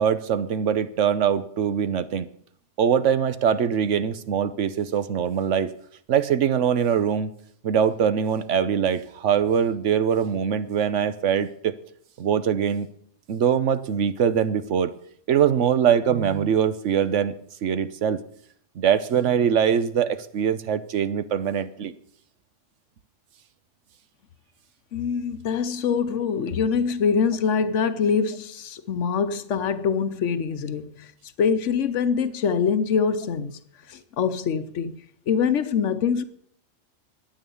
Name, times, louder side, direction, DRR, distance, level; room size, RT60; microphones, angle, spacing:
voice 1, 0.0-2.3 2.8-5.7 6.1-7.3 7.6-11.8 12.2-12.9 13.3-14.9 15.3-17.3 17.6-18.2 18.8-21.9, right 8 dB, 85° right, 1.2 m, -22 dB
voice 2, 24.9-31.1 31.4-33.6 33.9-36.2, left 6 dB, 90° left, 1.2 m, -24 dB
13.0 x 9.2 x 7.0 m
omnidirectional pair, 1.2 m